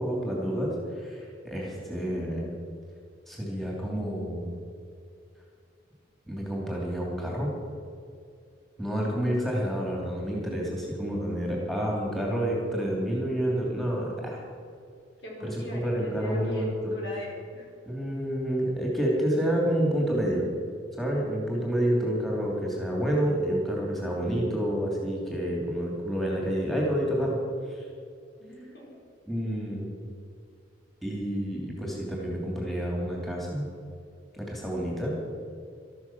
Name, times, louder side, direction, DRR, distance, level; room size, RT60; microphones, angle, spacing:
voice 1, 0.0-2.5 3.3-4.5 6.3-7.5 8.8-14.4 15.4-16.7 17.9-20.5 21.0-27.4 27.7-27.8 29.3-29.9 31.0-33.7 34.3-35.1, equal, ahead, -3 dB, 2.8 m, -29 dB
voice 2, 9.0-9.5 15.2-17.7 28.4-29.0, equal, 65° left, -3 dB, 4.7 m, -40 dB
13.5 x 13.0 x 6.1 m, 2.3 s
head